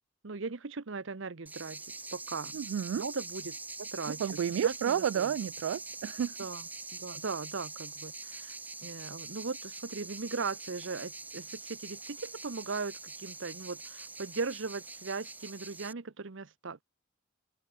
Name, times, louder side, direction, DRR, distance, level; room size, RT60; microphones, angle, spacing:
voice 1, 0.2-1.8 2.1-2.5 3.0-4.2 4.6-5.3 6.4-6.7 7.0-8.6 8.8-16.8, right 4 dB, 70° right, 0.9 m, -38 dB
sound 1, 1.5-15.9, right 3 dB, 10° right, 0.5 m, -44 dB
voice 2, 2.5-3.0 4.1-6.4, right 8 dB, 90° right, 0.3 m, -31 dB
open air
head